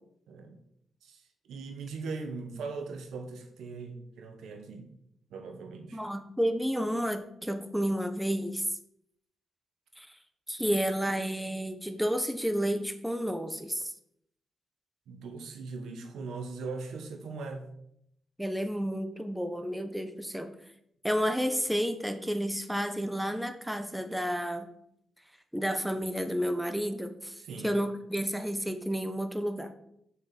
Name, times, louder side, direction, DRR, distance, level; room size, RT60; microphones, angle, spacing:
voice 1, 0.3-0.6 1.0-1.2 1.5-4.9 5.3-6.0 15.1-17.7 27.4-27.7, right 4 dB, 85° right, 5 dB, 1.4 m, -40 dB
voice 2, 5.9-8.6 10.0-10.1 10.5-13.9 18.4-20.5 21.0-24.7 25.5-29.7, equal, 5° right, 8 dB, 1.2 m, -31 dB
6.5 x 6.2 x 7.5 m, 0.74 s
cardioid pair, 70°, 0 cm